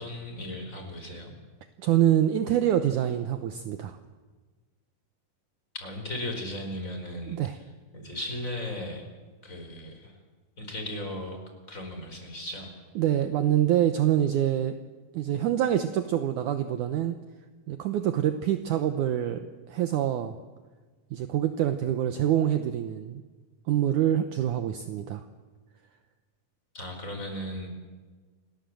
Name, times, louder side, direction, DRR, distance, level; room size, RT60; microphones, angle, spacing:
voice 1, 0.0-1.3 5.8-7.4 7.9-9.0 9.4-10.1 10.6-11.4 11.7-12.7 26.7-27.7, left 1 dB, 20° left, 4 dB, 4.9 m, -36 dB
voice 2, 1.8-4.0 7.3-7.6 13.0-14.7 15.1-17.2 17.7-20.3 21.1-23.2 23.7-25.2, right 11 dB, 70° right, 8 dB, 2.2 m, -25 dB
28.5 x 20.0 x 7.7 m, 1.4 s
omnidirectional pair, 4.1 m